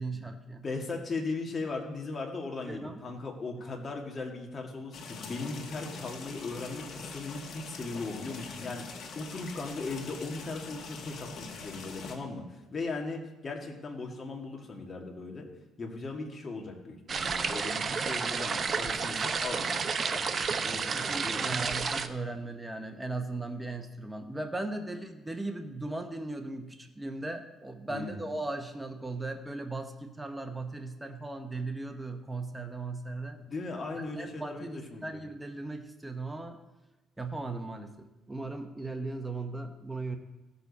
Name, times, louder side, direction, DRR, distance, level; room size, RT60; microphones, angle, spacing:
voice 1, 0.0-0.6 2.7-3.0 3.5-3.8 20.9-33.4 34.0-36.6 37.2-40.2, right 2 dB, 10° right, 5 dB, 1.0 m, -38 dB
voice 2, 0.6-15.5 15.8-21.6 27.9-28.2 33.5-35.2, left 3 dB, 35° left, 1 dB, 2.1 m, -38 dB
sound 1, 4.9-12.2, left 4 dB, 60° left, 1.8 m, -43 dB
sound 2, 17.1-22.1, right 5 dB, 40° right, 0.6 m, -31 dB
16.0 x 7.0 x 4.2 m, 1.1 s
cardioid pair, 100°, 0 cm